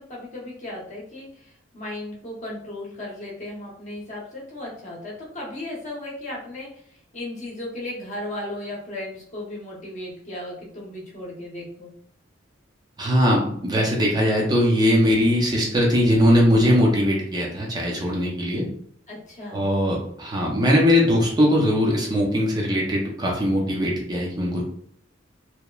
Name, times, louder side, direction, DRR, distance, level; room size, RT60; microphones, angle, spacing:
voice 1, 0.0-6.7 7.1-11.9 19.1-19.6, left 1 dB, 40° left, -4 dB, 0.8 m, -35 dB
voice 2, 13.0-18.7 19.5-24.6, equal, 20° right, -2 dB, 0.4 m, -20 dB
2.9 x 2.0 x 2.3 m, 0.65 s
head